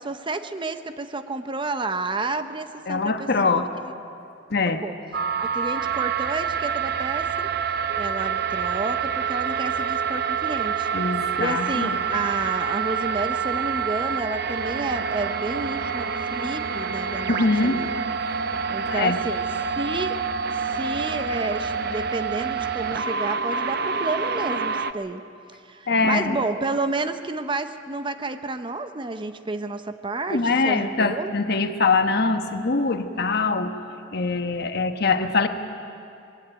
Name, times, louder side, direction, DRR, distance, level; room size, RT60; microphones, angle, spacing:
voice 1, 0.0-3.9 4.7-5.0 5.4-7.5 8.0-17.9 18.7-19.4 19.8-20.2 20.7-25.2 25.7-31.3, right 2 dB, 25° right, 9 dB, 0.7 m, -30 dB
voice 2, 2.9-3.7 4.5-4.8 10.9-12.0 17.3-17.8 18.9-19.2 25.9-26.4 30.3-33.7 34.1-35.5, left 4 dB, 60° left, 7 dB, 1.2 m, -23 dB
sound 1, 5.1-24.9, right 6 dB, 55° right, 0.6 m, -27 dB
20.5 x 17.0 x 8.9 m, 2.6 s
head